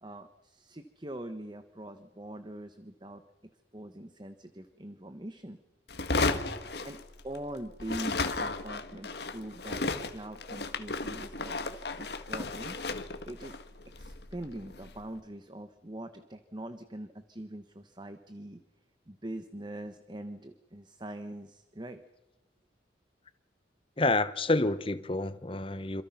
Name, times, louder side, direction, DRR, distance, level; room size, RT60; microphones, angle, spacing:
voice 1, 0.0-3.2 3.7-5.6 6.8-7.0 7.2-12.8 13.2-13.6 13.9-18.6 19.1-22.0, right 1 dB, 25° right, 1.1 m, -43 dB
sound 1, 5.9-7.5 7.8-15.0, left 3 dB, 60° left, 1.7 m, -34 dB
voice 2, 24.0-26.0, left 2 dB, 30° left, 1.0 m, -28 dB
27.0 x 26.5 x 5.9 m
head